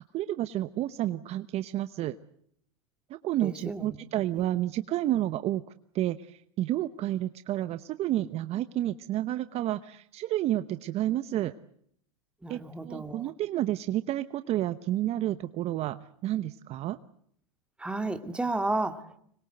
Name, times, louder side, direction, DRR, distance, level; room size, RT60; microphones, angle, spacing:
voice 1, 0.0-2.2 3.1-5.6 5.9-11.5 12.5-17.0, right 13 dB, 40° right, 12 dB, 0.9 m, -30 dB
voice 2, 3.4-4.0 4.3-4.4 12.4-13.2 17.8-19.2, right 2 dB, 5° right, 8 dB, 2.1 m, -32 dB
25.5 x 22.0 x 7.9 m, 0.68 s
hypercardioid pair, 115°, 17 cm